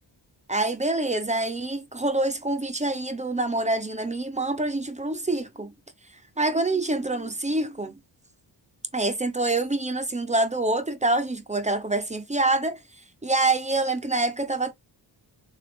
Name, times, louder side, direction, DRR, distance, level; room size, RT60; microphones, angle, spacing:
voice 1, 0.5-5.7 6.4-7.9 8.9-12.8 13.2-14.7, right 2 dB, 15° right, 0.5 m, -26 dB
6.7 x 2.3 x 3.4 m
wide cardioid pair, 165°, 46 cm